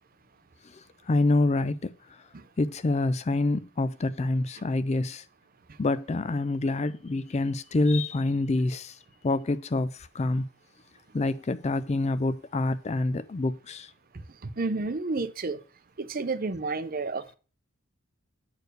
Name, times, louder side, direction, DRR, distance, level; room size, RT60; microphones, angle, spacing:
voice 1, 0.6-2.2 2.6-5.2 5.8-10.5 11.1-13.9, left 2 dB, 30° left, 0.4 m, -27 dB
voice 2, 14.4-15.6 16.0-17.3, right 3 dB, 40° right, 0.6 m, -30 dB
7.9 x 4.6 x 6.5 m
head